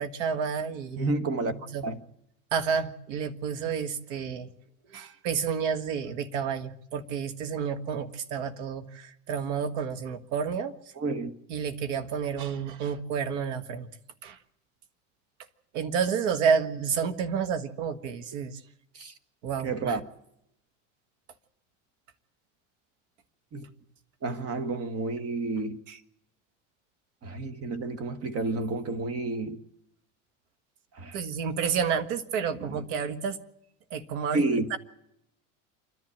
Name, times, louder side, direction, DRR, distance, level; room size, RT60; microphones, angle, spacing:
voice 1, 0.0-1.1 1.5-1.8 2.5-4.5 4.9-10.9 11.5-13.9 14.2-14.4 15.7-18.6 19.4-20.0 25.9-26.0 31.1-33.4 33.9-34.4 34.7-34.8, right 6 dB, 75° right, 1.8 m, -30 dB
voice 2, 1.0-1.5 1.8-2.0 11.0-11.3 18.9-19.1 19.6-20.0 23.5-23.7 24.2-25.8 27.2-29.6 30.9-31.2 32.6-32.8 34.3-34.8, right 3 dB, 40° right, 1.6 m, -30 dB
27.5 x 11.0 x 8.7 m
supercardioid pair, 115°, 37 cm